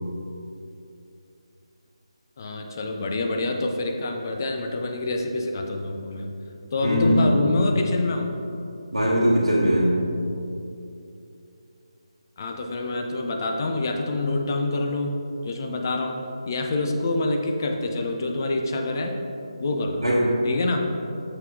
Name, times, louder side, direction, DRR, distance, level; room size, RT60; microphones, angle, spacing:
voice 1, 2.4-6.3 6.7-8.3 12.4-15.1 15.4-16.2 16.5-19.2 19.6-20.1 20.4-20.8, left 2 dB, 35° left, 3 dB, 0.6 m, -26 dB
voice 2, 6.8-7.3 8.9-10.2 20.0-20.5, equal, 80° right, -6 dB, 1.1 m, -21 dB
6.7 x 4.5 x 3.6 m, 2.7 s
figure-of-eight pair, 150°, 3 cm